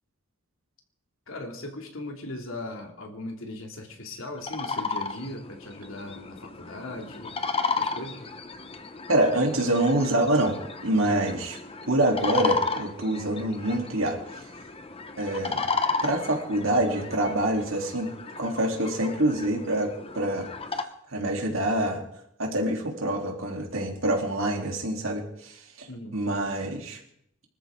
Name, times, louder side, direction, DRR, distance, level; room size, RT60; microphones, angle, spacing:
voice 1, 1.3-7.4 7.8-8.3 25.9-26.2, left 2 dB, 85° left, 2 dB, 2.9 m, -38 dB
sound 1, 4.4-20.8, left 4 dB, 30° left, 1.1 m, -34 dB
voice 2, 9.1-11.6 11.9-14.2 15.2-15.7 16.0-18.1 18.4-20.5 21.1-22.0 22.4-25.9 26.1-27.0, right 1 dB, 90° right, 1 dB, 3.6 m, -26 dB
25.5 x 13.5 x 3.9 m, 0.75 s
head